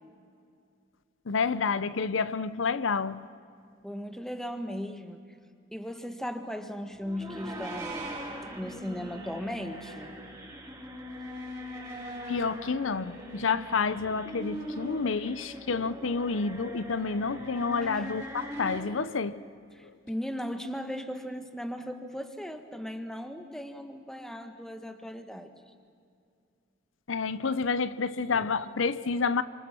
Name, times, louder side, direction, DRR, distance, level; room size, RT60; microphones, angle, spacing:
voice 1, 1.3-3.2 12.3-19.4 27.1-29.4, left 4 dB, 85° left, 0.7 m, -29 dB
voice 2, 3.8-5.2 5.7-8.2 8.5-10.2 17.8-18.1 19.7-25.7, equal, 5° left, 1.5 m, -37 dB
sound 1, 7.0-18.8, equal, 20° right, 4.8 m, -41 dB
29.0 x 26.0 x 6.2 m
head